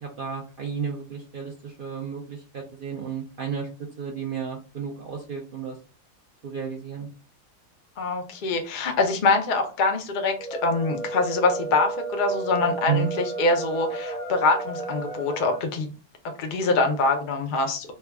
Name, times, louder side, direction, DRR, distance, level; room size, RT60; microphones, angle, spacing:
voice 1, 0.0-3.7 4.0-5.8 6.4-7.1 12.9-13.1, right 6 dB, 65° right, -1 dB, 0.5 m, -32 dB
voice 2, 8.0-10.4 10.6-15.9 16.4-17.9, left 3 dB, 70° left, 4 dB, 0.4 m, -24 dB
sound 1, 10.4-15.7, right 3 dB, 5° left, 0.5 m, -33 dB
3.3 x 2.2 x 3.4 m, 0.34 s
omnidirectional pair, 1.7 m